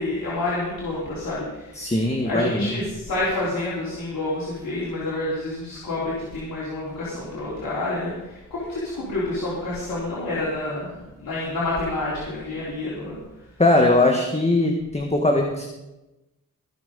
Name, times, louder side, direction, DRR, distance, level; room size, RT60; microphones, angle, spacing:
voice 1, 0.0-1.9 2.2-10.9 11.2-13.2, left 2 dB, 80° left, -8 dB, 4.0 m, -28 dB
voice 2, 1.8-2.7 13.6-15.6, left 2 dB, 20° left, 2 dB, 1.7 m, -20 dB
20.5 x 7.1 x 5.3 m, 1.0 s
cardioid pair, 65°, 34 cm